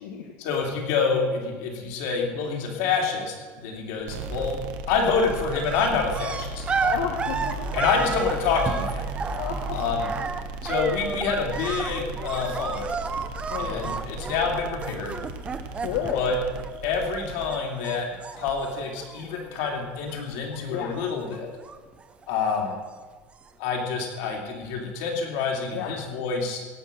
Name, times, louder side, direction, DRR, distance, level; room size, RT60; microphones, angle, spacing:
voice 1, 0.4-4.6 4.9-6.6 7.7-9.1 9.7-10.0 10.6-13.0 13.6-15.1 16.1-16.4 16.8-18.1 18.4-21.5 22.3-22.8 23.6-26.6, left 5 dB, 70° left, 1 dB, 3.0 m, -27 dB
sound 1, 4.1-21.1, right 2 dB, 65° right, 1.3 m, -37 dB
sound 2, 4.2-4.7 4.9-17.2 17.5-19.6 19.9-20.6 20.9-22.7 23.4-23.5, right 5 dB, 20° right, 0.7 m, -33 dB
voice 2, 6.8-7.8 9.3-9.6 13.5-14.0 15.8-16.2 20.7-20.9 25.7-25.9, left 8 dB, 85° left, 1 dB, 1.5 m, -31 dB
17.5 x 6.1 x 6.7 m, 1.4 s
cardioid pair, 160°, 6 cm